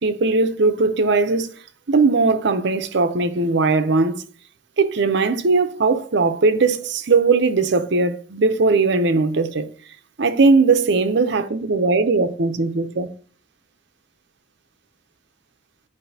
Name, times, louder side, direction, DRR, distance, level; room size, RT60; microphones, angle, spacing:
voice 1, 0.0-1.5 1.9-4.2 4.8-9.7 10.2-13.1, right 3 dB, 65° right, 0.6 m, -19 dB
9.7 x 4.9 x 2.7 m
head